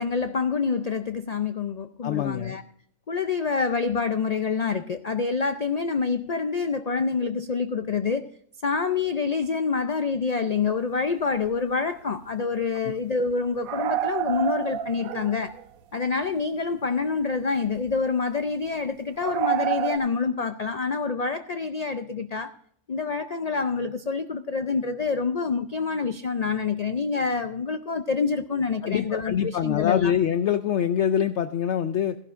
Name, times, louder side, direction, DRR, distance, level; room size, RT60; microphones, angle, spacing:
voice 1, 0.0-2.6 3.1-8.3 8.6-15.6 15.9-22.5 22.9-30.1, left 5 dB, 85° left, 0.3 m, -27 dB
voice 2, 2.0-2.5 28.8-32.2, left 9 dB, 65° left, 0.8 m, -24 dB
sound 1, 10.9-11.0 11.5-11.6 11.8-11.9 13.6-15.6 16.2-16.3 17.7-18.0 19.2-20.0, right 11 dB, 85° right, 1.1 m, -28 dB
15.5 x 11.5 x 2.5 m
omnidirectional pair, 1.4 m